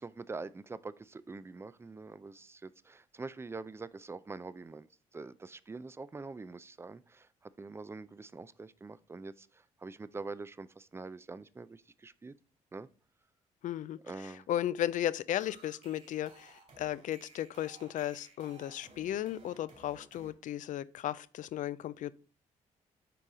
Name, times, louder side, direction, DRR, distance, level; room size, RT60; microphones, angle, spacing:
voice 1, 0.0-4.9 5.1-12.3 12.7-12.9 14.0-14.5, right 3 dB, 15° right, 0.4 m, -45 dB
voice 2, 13.6-22.1, left 12 dB, 65° left, 0.4 m, -35 dB
sound 1, 15.3-20.3, right 2 dB, 50° right, 2.9 m, -57 dB
6.8 x 4.7 x 3.7 m
supercardioid pair, 65°, 14 cm